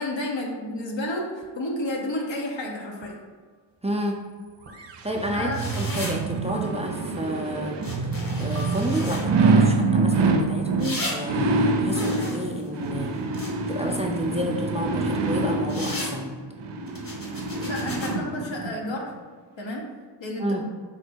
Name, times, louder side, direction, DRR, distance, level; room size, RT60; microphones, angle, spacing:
voice 1, 0.0-3.1 5.3-5.6 17.5-19.1 19.6-19.8 20.2-20.6, left 1 dB, 75° left, -1 dB, 0.9 m, -31 dB
sound 1, 1.4-1.5 3.0-3.4 4.7-5.2 6.5-7.3 8.6-9.5, left 1 dB, 35° right, 0.9 m, -45 dB
voice 2, 3.8-4.2 5.0-8.1 8.4-13.1 13.7-16.4 20.4-20.6, equal, 15° right, 0 dB, 0.4 m, -30 dB
sound 2, 4.8-18.7 19.2-19.3, right 3 dB, 70° right, 0.5 m, -26 dB
sound 3, 5.5-6.2 7.8-9.3 10.8-11.2 11.9-13.8 15.6-16.1 16.9-18.1, left 1 dB, 45° left, 1.1 m, -35 dB
4.3 x 2.1 x 4.4 m, 1.6 s
cardioid pair, 55°, 45 cm